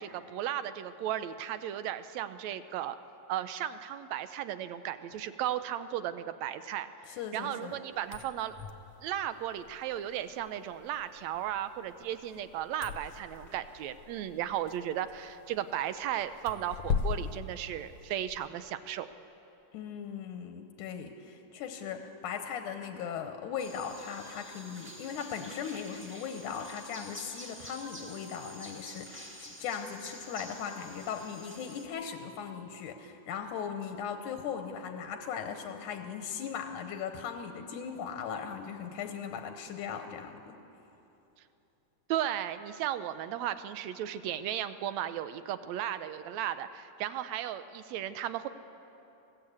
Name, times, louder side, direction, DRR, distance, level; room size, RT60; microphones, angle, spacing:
voice 1, 0.0-3.0 3.3-8.5 9.0-19.1 42.1-48.5, right 11 dB, 75° right, 12 dB, 1.7 m, -35 dB
voice 2, 7.1-7.8 19.7-40.6, left 7 dB, 85° left, 6 dB, 2.5 m, -38 dB
sound 1, 8.0-18.5, left 6 dB, 65° left, 1.6 m, -40 dB
sound 2, 23.6-31.9, equal, 5° right, 1.0 m, -48 dB
21.0 x 15.5 x 8.4 m, 3.0 s
omnidirectional pair, 3.5 m